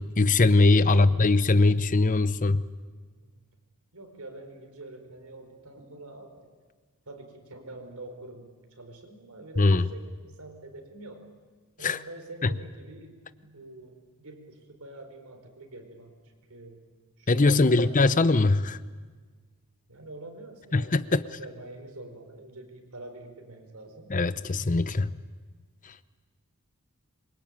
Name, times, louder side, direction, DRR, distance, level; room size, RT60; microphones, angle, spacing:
voice 1, 0.0-2.6 9.6-9.8 11.8-12.0 12.4-12.5 17.3-18.8 20.7-21.2 24.1-25.1, left 3 dB, 35° left, 15 dB, 0.7 m, -21 dB
voice 2, 0.7-1.2 3.2-3.4 3.9-6.5 7.1-11.3 11.8-16.2 16.5-16.9 17.2-18.0 19.9-24.2, right 2 dB, 80° right, 5 dB, 4.6 m, -46 dB
26.0 x 23.5 x 9.1 m, 1.5 s
head